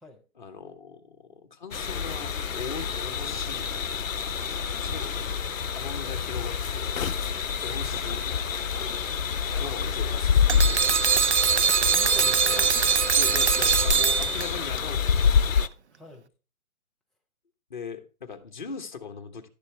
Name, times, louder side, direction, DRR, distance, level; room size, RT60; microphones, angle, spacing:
voice 1, 0.3-1.2 1.4-3.8 4.7-5.4 5.7-7.0 7.6-8.4 9.4-11.0 12.2-12.7 13.2-15.5 17.7-19.5, left 5 dB, 35° left, 1.1 m, -40 dB
sound 1, 1.7-15.7, left 6 dB, 65° left, 0.7 m, -27 dB
voice 2, 9.4-10.2 11.9-13.2 15.9-16.3, left 1 dB, ahead, 0.4 m, -47 dB
sound 2, 10.5-14.8, right 7 dB, 55° right, 0.4 m, -22 dB
11.5 x 6.8 x 3.3 m
hypercardioid pair, 165°, 43 cm